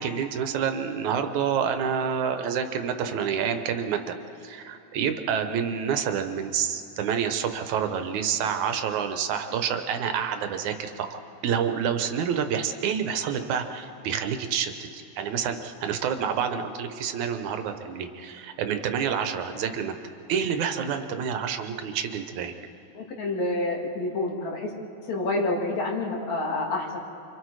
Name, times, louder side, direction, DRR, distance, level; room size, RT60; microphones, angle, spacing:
voice 1, 0.0-4.2 4.4-20.0 20.3-22.5, right 7 dB, 75° right, 7 dB, 2.4 m, -28 dB
voice 2, 23.0-24.7 25.1-27.0, left 2 dB, 65° left, -1 dB, 3.6 m, -28 dB
29.5 x 25.5 x 4.8 m, 2.8 s
omnidirectional pair, 3.4 m